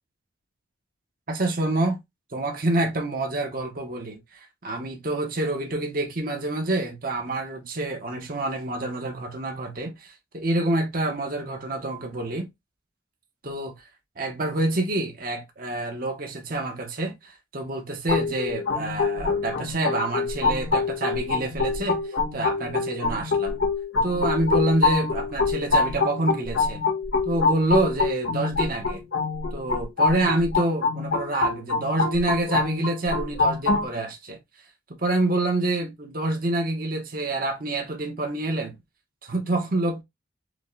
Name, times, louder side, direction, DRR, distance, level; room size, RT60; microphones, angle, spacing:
voice 1, 1.3-2.0 2.3-12.5 13.4-13.7 14.2-23.6 24.0-26.8 27.2-29.0 29.5-34.4 35.0-38.8 39.2-40.0, right 2 dB, 45° right, 0.9 m, -27 dB
sound 1, 18.1-33.9, left 4 dB, 80° left, 1.4 m, -25 dB
5.0 x 2.2 x 2.4 m
head